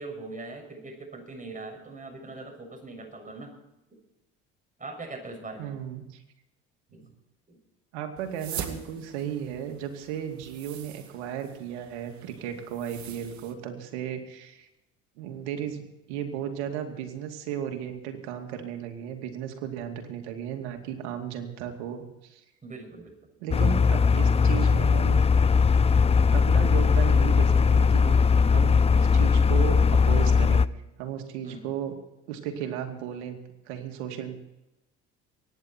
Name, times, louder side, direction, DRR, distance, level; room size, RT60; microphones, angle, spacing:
voice 1, 0.0-3.5 4.8-5.7 6.9-7.1 7.5-7.6 8.6-9.0 22.6-23.2 31.4-31.7, right 3 dB, 25° right, 2 dB, 6.6 m, -41 dB
voice 2, 5.6-6.0 7.9-14.7 15.2-15.8 16.1-22.4 23.4-25.2 26.3-28.1 28.4-30.7 31.0-31.9 32.3-33.4 33.7-34.3, right 9 dB, 80° right, 5 dB, 2.6 m, -35 dB
sound 1, 8.2-13.5, right 9 dB, 55° right, 2.0 m, -43 dB
sound 2, 23.5-30.7, left 5 dB, 20° left, 0.5 m, -20 dB
24.0 x 10.5 x 4.5 m, 0.93 s
hypercardioid pair, 75°, 33 cm